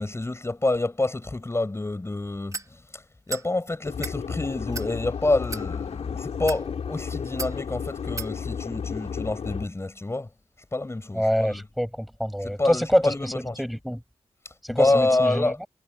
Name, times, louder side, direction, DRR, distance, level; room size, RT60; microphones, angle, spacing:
voice 1, 0.0-10.3 10.7-11.6 12.4-13.6 14.4-15.6, left 2 dB, 25° left, 4.9 m, -27 dB
sound 1, 2.5-2.7 3.3-3.5 3.9-4.2 4.7-4.9 5.4-5.6 6.3-6.6 7.4-7.5 8.2-8.3, right 4 dB, 30° right, 2.3 m, -34 dB
sound 2, 3.8-9.7, left 6 dB, 80° left, 3.3 m, -33 dB
voice 2, 11.1-13.1 13.6-14.0 14.7-15.7, equal, ahead, 6.5 m, -25 dB
cardioid pair, 70°, 11 cm